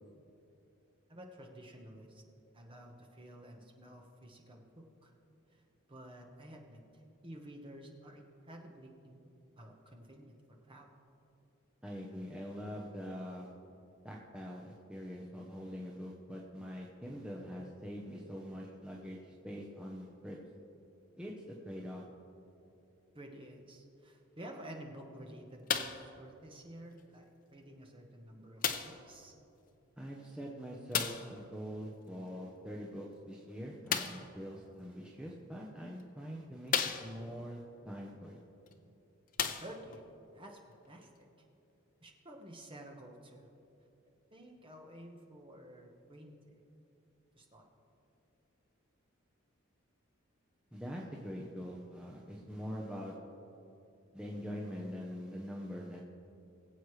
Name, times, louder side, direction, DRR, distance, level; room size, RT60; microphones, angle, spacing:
voice 1, 1.1-2.2 2.5-5.1 5.5-5.6 5.9-9.2 9.6-10.9 23.1-29.3 39.6-40.1 40.3-40.6 40.9-41.3 42.0-43.5 44.3-46.6 47.3-47.7, right 1 dB, 25° right, 2 dB, 1.1 m, -51 dB
voice 2, 11.8-13.5 14.0-20.4 21.2-22.1 30.0-36.8 37.0-38.4 50.7-53.2 54.1-56.0, equal, 5° right, -3 dB, 0.8 m, -44 dB
sound 1, 25.7-26.1 27.0-27.1 28.6-29.1 30.9-31.3 33.9-34.3 35.3-35.4 36.0-36.1 36.7-37.4 38.7-38.8 39.3-40.0 40.9-41.0, left 7 dB, 40° left, 0.6 m, -34 dB
22.0 x 7.9 x 3.2 m, 2.7 s
head